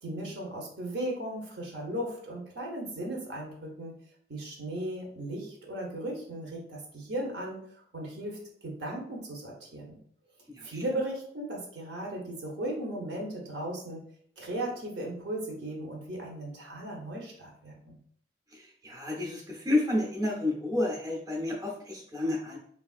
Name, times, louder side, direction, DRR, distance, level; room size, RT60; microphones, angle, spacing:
voice 1, 0.0-3.9 4.3-7.6 7.9-10.0 10.6-14.0 14.4-18.0, right 1 dB, 65° right, -1 dB, 0.8 m, -36 dB
voice 2, 18.8-22.6, left 2 dB, 20° right, -2 dB, 0.6 m, -30 dB
3.3 x 2.4 x 2.4 m, 0.62 s
head